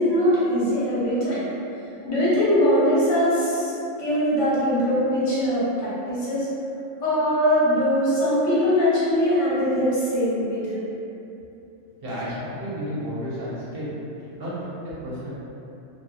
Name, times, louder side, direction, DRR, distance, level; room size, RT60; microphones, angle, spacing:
voice 1, 0.0-1.4 2.0-3.7 4.0-6.5 7.0-10.8, equal, 75° left, -9 dB, 1.2 m, -21 dB
voice 2, 12.0-13.9 14.3-15.3, equal, 55° right, -10 dB, 0.9 m, -32 dB
2.8 x 2.2 x 2.3 m, 2.8 s
omnidirectional pair, 1.3 m